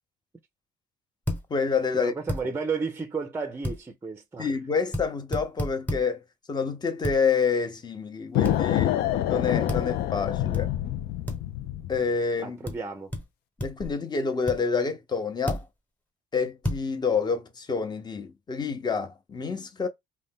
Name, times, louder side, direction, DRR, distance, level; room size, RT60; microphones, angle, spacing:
sound 1, 1.3-1.4 2.3-2.4 3.6-3.8 4.9-5.1 5.3-6.0 7.0-7.2 8.5-8.6 9.7-9.9 10.5-10.6 11.3-11.4 12.7-12.8 13.1-13.2 13.6-13.9 14.5-14.6 15.5-15.7 16.6-16.8, equal, 10° left, 1.1 m, -30 dB
voice 1, 1.5-2.1 4.4-6.2 6.5-9.0 9.3-10.7 11.9-12.6 13.6-15.7 16.3-19.9, left 5 dB, 25° left, 0.7 m, -28 dB
voice 2, 2.0-4.5 12.4-13.1, right 5 dB, 15° right, 0.5 m, -32 dB
sound 2, 8.3-12.1, left 13 dB, 70° left, 0.4 m, -26 dB
2.6 x 2.2 x 3.6 m
cardioid pair, 110°, 17 cm